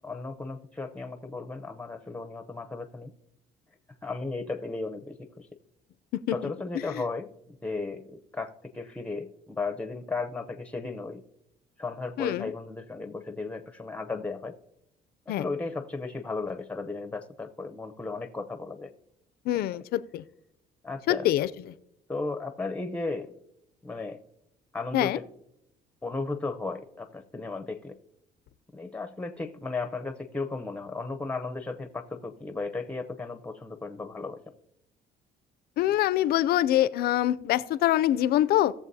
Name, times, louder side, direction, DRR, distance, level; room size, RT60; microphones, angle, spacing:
voice 1, 0.0-3.1 4.0-5.5 6.3-11.2 11.8-14.5 15.3-18.9 20.8-21.3 22.1-23.3 23.8-24.2 24.7-25.3 26.0-28.0 28.7-34.4, left 3 dB, 5° left, 8 dB, 0.6 m, -35 dB
voice 2, 12.2-12.5 15.3-15.4 19.5-20.2 21.1-21.5 24.9-25.2 35.8-38.7, left 13 dB, 65° left, 16 dB, 0.4 m, -24 dB
17.0 x 7.1 x 2.7 m, 0.80 s
cardioid pair, 110°, 17 cm